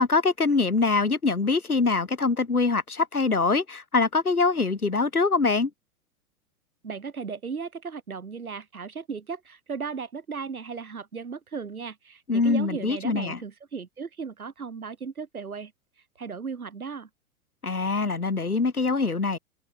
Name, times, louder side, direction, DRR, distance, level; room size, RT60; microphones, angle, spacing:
voice 1, 0.0-5.7 12.3-13.4 17.6-19.4, left 4 dB, 80° left, 3.4 m, -24 dB
voice 2, 6.8-15.7 16.2-17.1, right 5 dB, 75° right, 2.9 m, -36 dB
open air
figure-of-eight pair, 100°, 43 cm